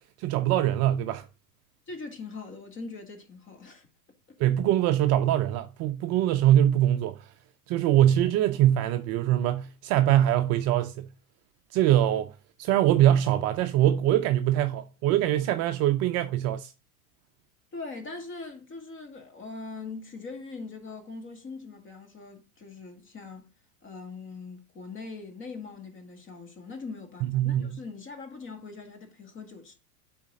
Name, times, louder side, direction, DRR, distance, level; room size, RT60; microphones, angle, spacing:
voice 1, 0.2-1.3 4.4-7.3 7.7-11.1 11.7-16.7 27.2-27.7, right 12 dB, 35° right, 0.5 m, -23 dB
voice 2, 1.9-3.9 4.3-4.4 17.7-23.5 23.8-29.8, left 4 dB, 25° left, 1.9 m, -41 dB
9.3 x 4.1 x 3.8 m
hypercardioid pair, 110°, 44 cm